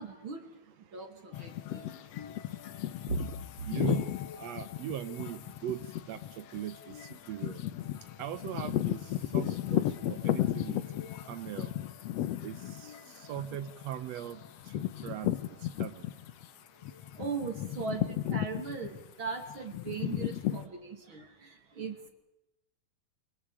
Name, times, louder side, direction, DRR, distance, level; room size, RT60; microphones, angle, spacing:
voice 1, 0.0-3.7 7.2-7.3 8.0-8.1 13.0-13.1 16.8-22.1, right 5 dB, 40° right, 5 dB, 2.7 m, -40 dB
sound 1, 1.3-16.5 16.8-20.6, left 13 dB, 75° left, 1.5 m, -35 dB
voice 2, 3.6-4.1 4.4-5.8 6.1-7.6 8.2-10.8 11.3-11.7 12.4-16.1, right 11 dB, 80° right, 13 dB, 1.5 m, -40 dB
29.0 x 25.0 x 5.0 m, 0.90 s
omnidirectional pair, 4.3 m